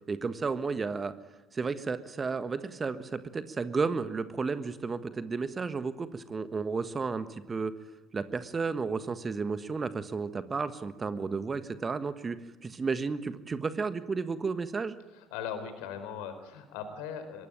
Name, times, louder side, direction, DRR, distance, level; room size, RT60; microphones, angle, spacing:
voice 1, 0.1-1.1 1.5-7.7 8.1-15.0, right 4 dB, 25° right, 12 dB, 1.5 m, -32 dB
voice 2, 15.1-17.5, left 7 dB, 60° left, 9 dB, 4.5 m, -39 dB
25.0 x 22.5 x 9.1 m, 1.1 s
figure-of-eight pair, 55°, 0 cm